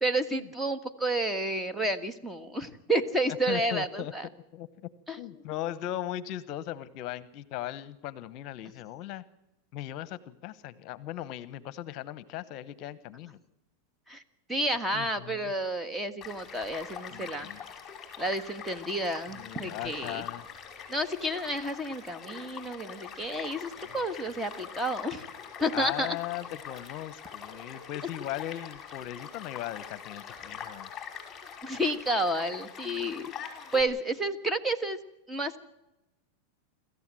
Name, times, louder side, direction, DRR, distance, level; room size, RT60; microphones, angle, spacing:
voice 1, 0.0-4.3 5.1-5.2 14.1-14.2 14.5-17.5 18.2-20.2 20.9-25.2 25.6-26.2 31.6-33.3 33.7-35.0 35.3-35.6, right 1 dB, 5° right, 8 dB, 1.6 m, -30 dB
voice 2, 3.5-4.1 4.5-4.9 5.2-9.2 9.7-13.4 14.9-15.5 17.1-17.6 19.3-20.4 25.7-30.9 33.0-33.1, left 13 dB, 50° left, 16 dB, 1.0 m, -38 dB
Child speech kid speaking / Stream / Car passing by, 16.2-33.8, left 7 dB, 25° left, 5.1 m, -43 dB
26.5 x 14.5 x 7.6 m, 0.94 s
hypercardioid pair, 115°, 0 cm